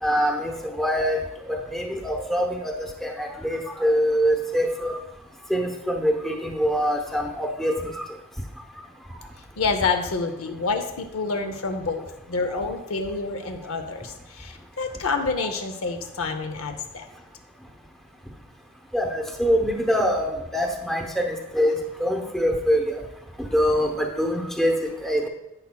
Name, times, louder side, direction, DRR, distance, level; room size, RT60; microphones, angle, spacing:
voice 1, 0.0-1.2 1.7-5.0 5.5-8.0 15.4-15.5 18.9-23.0 23.4-25.3, equal, ahead, 2 dB, 0.9 m, -24 dB
voice 2, 9.6-17.0, left 4 dB, 75° left, 6 dB, 0.7 m, -28 dB
10.5 x 8.3 x 2.3 m, 0.95 s
head